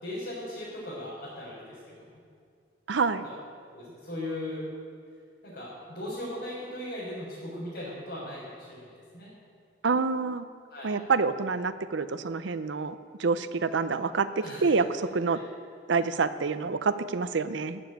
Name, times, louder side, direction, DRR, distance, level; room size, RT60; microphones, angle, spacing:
voice 1, 0.0-2.1 3.2-3.3 3.7-4.6 5.4-9.3 10.7-11.0 14.4-14.7 15.3-15.4, left 1 dB, 65° left, -10 dB, 4.2 m, -38 dB
voice 2, 2.9-3.2 9.8-10.5 10.8-15.4 15.9-17.8, right 4 dB, 85° right, 12 dB, 0.6 m, -27 dB
14.5 x 7.1 x 9.1 m, 2.2 s
head